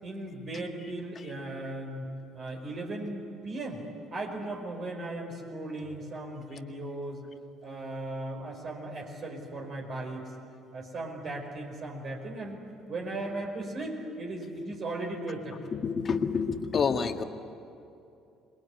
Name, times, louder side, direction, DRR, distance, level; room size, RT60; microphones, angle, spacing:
voice 1, 0.0-2.1 2.3-3.8 4.1-7.2 7.6-10.3 10.7-12.6 12.9-15.7, right 2 dB, 50° right, 1 dB, 5.1 m, -37 dB
voice 2, 15.7-17.2, left 5 dB, 40° left, 6 dB, 1.8 m, -28 dB
27.5 x 21.5 x 9.8 m, 2.7 s
hypercardioid pair, 55°, 0 cm